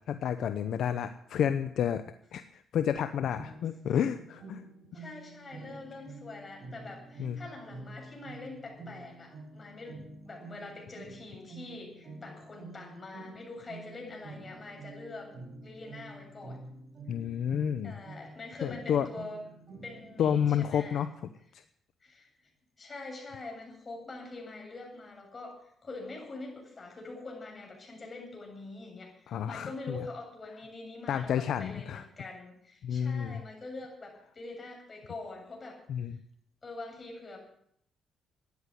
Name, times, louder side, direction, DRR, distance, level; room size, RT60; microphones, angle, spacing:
voice 1, 0.1-2.0 2.3-4.6 7.2-7.4 17.1-18.0 18.6-19.1 20.2-21.1 29.3-30.0 31.1-32.0 32.8-33.4 35.9-36.2, left 9 dB, 70° left, 9 dB, 0.8 m, -30 dB
sound 1, 3.3-20.8, right 3 dB, 45° right, 4.5 m, -48 dB
voice 2, 4.9-15.3 15.6-16.6 17.8-19.4 19.8-21.0 22.0-22.3 22.8-35.8 36.1-36.2 36.6-37.4, left 2 dB, 30° left, 1 dB, 7.9 m, -44 dB
14.5 x 10.5 x 8.3 m, 0.68 s
cardioid pair, 90°, 0 cm